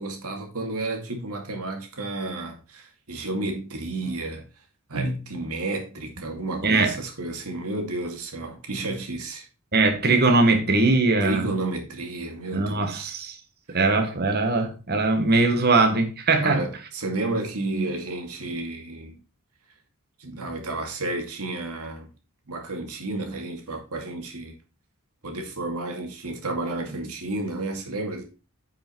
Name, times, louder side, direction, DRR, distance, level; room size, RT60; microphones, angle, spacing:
voice 1, 0.0-4.4 4.9-9.5 11.2-13.1 13.7-13.8 16.4-19.2 20.2-22.1 22.5-24.5 25.2-28.2, right 2 dB, 80° right, 2.4 m, -31 dB
voice 2, 9.7-11.5 12.5-13.4 13.7-16.6, right 3 dB, 45° right, 1.5 m, -21 dB
8.8 x 5.1 x 4.6 m
head